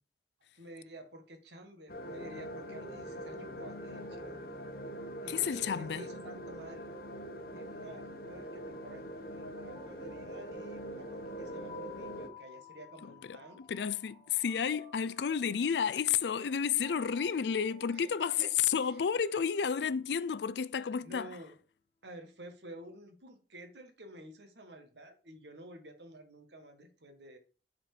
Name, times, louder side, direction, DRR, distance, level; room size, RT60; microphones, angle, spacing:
voice 1, 0.5-4.5 5.2-6.9 7.5-13.6 17.9-18.1 18.4-18.9 21.0-21.5 22.0-27.4, right 1 dB, 80° right, 1.6 m, -51 dB
sound 1, 1.9-12.3, equal, 55° left, 1.0 m, -43 dB
voice 2, 5.3-6.1 13.0-21.4, left 7 dB, 75° left, 0.4 m, -31 dB
sound 2, 9.7-20.6, left 4 dB, 30° left, 1.3 m, -56 dB
7.5 x 4.4 x 4.9 m
head